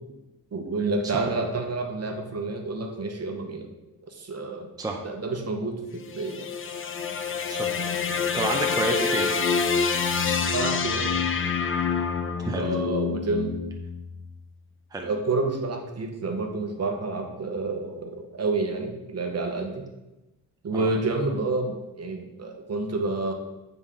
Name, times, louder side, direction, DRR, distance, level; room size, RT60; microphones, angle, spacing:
voice 1, 0.5-3.7 4.1-4.7 5.0-6.5 10.5-11.1 12.5-13.6 15.0-19.8 20.6-23.3, right 3 dB, 45° right, 4 dB, 1.0 m, -29 dB
sound 1, 5.9-14.3, left 6 dB, 35° left, 0.4 m, -27 dB
voice 2, 8.3-9.3 12.4-12.7 14.9-15.1 20.7-20.9, right 2 dB, 10° right, 2 dB, 0.6 m, -29 dB
8.5 x 4.0 x 3.7 m, 1.0 s
wide cardioid pair, 130°, 36 cm